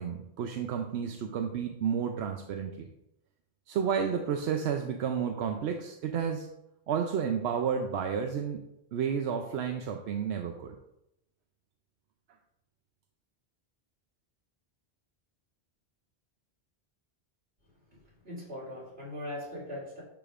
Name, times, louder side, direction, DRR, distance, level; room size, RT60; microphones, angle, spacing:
voice 1, 0.0-2.9 3.7-6.5 6.9-8.6 8.9-10.8, right 7 dB, 90° right, 4 dB, 0.9 m, -31 dB
voice 2, 18.2-20.0, left 1 dB, 70° right, -7 dB, 3.0 m, -40 dB
10.5 x 5.1 x 2.5 m, 0.86 s
omnidirectional pair, 1.1 m